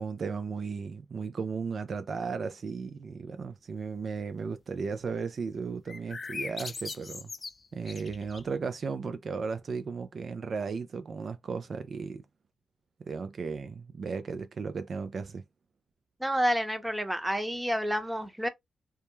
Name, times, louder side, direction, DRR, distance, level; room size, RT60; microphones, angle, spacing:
voice 1, 0.0-7.3 7.7-12.2 13.1-15.4, right 5 dB, 55° right, 0.3 m, -35 dB
sound 1, 5.9-8.6, left 4 dB, 40° left, 0.3 m, -40 dB
voice 2, 16.2-18.5, equal, 5° right, 0.7 m, -29 dB
2.2 x 2.0 x 3.0 m
supercardioid pair, 50°, 0 cm